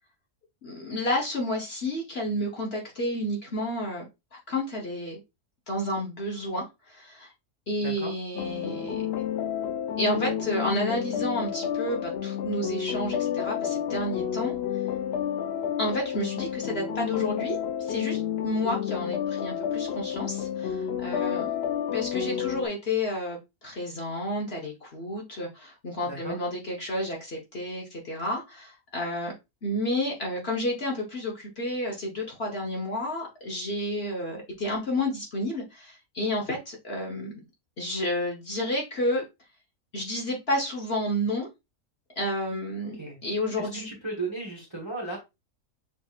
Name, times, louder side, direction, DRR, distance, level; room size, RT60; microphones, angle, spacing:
voice 1, 0.6-5.2 5.7-7.3 7.7-9.1 10.0-14.6 15.8-21.5 21.9-29.3 29.6-37.3 37.8-39.2 39.9-41.5 42.2-43.0 43.2-43.9, left 1 dB, 45° left, -1 dB, 1.2 m, -31 dB
voice 2, 7.8-8.1 26.0-26.4 42.8-43.2 43.6-45.2, right 3 dB, 20° right, -1 dB, 1.1 m, -35 dB
sound 1, 8.3-22.7, left 9 dB, 85° left, 0.5 m, -30 dB
6.3 x 2.8 x 2.4 m, 0.23 s
omnidirectional pair, 1.6 m